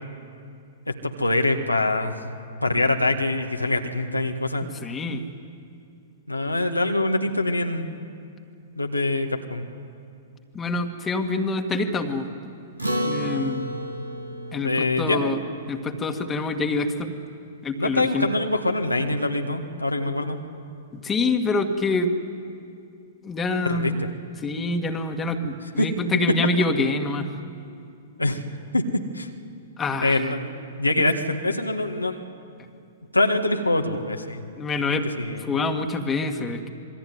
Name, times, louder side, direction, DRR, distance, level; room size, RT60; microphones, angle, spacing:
voice 1, 0.9-2.2 2.6-4.7 6.3-7.9 8.8-9.7 14.6-15.4 17.8-20.4 23.6-24.1 25.8-25.9 28.2-28.4 28.7-28.8 29.1-29.3 30.0-30.5 30.8-32.2 33.1-34.4 34.9-35.6, left 2 dB, 90° left, 3 dB, 1.8 m, -24 dB
voice 2, 4.6-5.2 10.5-12.3 13.0-13.8 14.5-15.4 15.7-17.1 17.6-18.3 21.0-22.1 23.2-24.0 24.4-27.3 29.8-30.2 34.6-35.1 35.5-36.7, left 3 dB, 15° left, 4 dB, 2.0 m, -26 dB
Acoustic guitar, 12.8-17.5, equal, 90° right, 2.4 m, -32 dB
26.5 x 21.5 x 9.6 m, 2.5 s
figure-of-eight pair, 110°, 0 cm